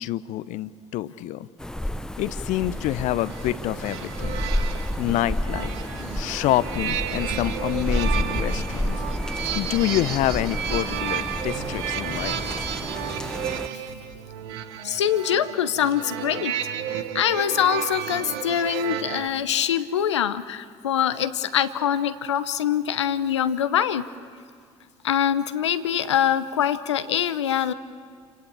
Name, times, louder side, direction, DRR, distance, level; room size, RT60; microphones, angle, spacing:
voice 1, 0.0-1.5 2.2-4.4 5.0-5.7 6.1-9.0 9.5-12.4, left 14 dB, 60° left, 15 dB, 0.8 m, -27 dB
sound 1, 1.6-13.7, left 1 dB, 5° left, 0.5 m, -30 dB
sound 2, 2.7-19.3, right 10 dB, 75° right, 1.2 m, -32 dB
voice 2, 14.8-24.0 25.0-27.7, left 9 dB, 85° left, 13 dB, 0.9 m, -24 dB
28.5 x 17.5 x 8.8 m, 2.3 s
hypercardioid pair, 65°, 14 cm